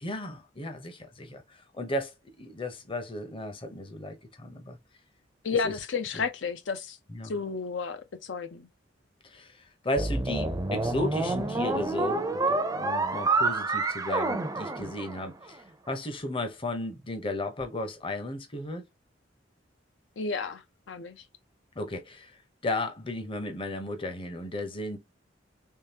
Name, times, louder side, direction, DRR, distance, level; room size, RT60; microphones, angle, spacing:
voice 1, 0.0-4.8 5.6-5.7 7.1-7.3 9.2-18.8 21.8-22.4 22.6-25.0, left 1 dB, 30° left, 0.7 m, -35 dB
voice 2, 5.4-7.0 7.2-8.7 20.2-21.2, left 5 dB, 75° left, 0.6 m, -32 dB
sound 1, 10.0-15.4, right 3 dB, 20° right, 0.5 m, -28 dB
3.7 x 3.2 x 2.8 m
head